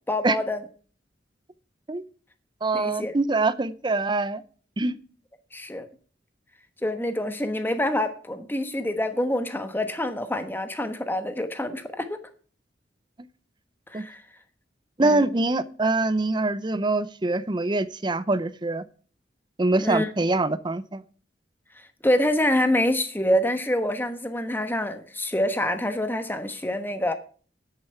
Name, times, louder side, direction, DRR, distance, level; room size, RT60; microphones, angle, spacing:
voice 1, 0.1-0.6 2.7-3.1 5.5-5.9 6.8-12.2 13.9-14.2 15.0-15.3 19.8-20.1 22.0-27.1, left 1 dB, 10° left, 8 dB, 1.2 m, -26 dB
voice 2, 2.6-4.4 4.8-5.0 13.9-14.0 15.0-18.8 19.6-21.0, right 2 dB, 25° right, 15 dB, 0.6 m, -24 dB
10.0 x 9.0 x 4.5 m, 0.42 s
head